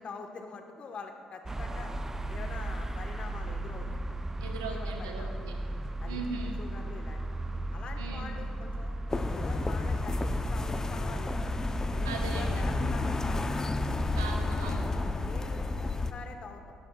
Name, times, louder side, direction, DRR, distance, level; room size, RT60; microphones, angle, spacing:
voice 1, 0.0-1.9 2.3-4.1 4.7-5.4 6.0-6.2 6.6-7.2 7.7-9.0 9.3-11.4 11.9-13.5 14.1-14.2 15.0-16.7, left 4 dB, 50° left, 4 dB, 1.4 m, -45 dB
sound 1, 1.4-13.5, right 1 dB, 15° right, 0.6 m, -36 dB
voice 2, 4.4-5.5 6.1-6.6 8.0-8.3 12.0-12.6 14.1-14.9, right 4 dB, 85° right, 2 dB, 1.1 m, -39 dB
sound 2, 9.1-16.1, left 2 dB, 25° left, 0.7 m, -31 dB
17.5 x 12.0 x 2.4 m, 2.3 s
hypercardioid pair, 50°, 2 cm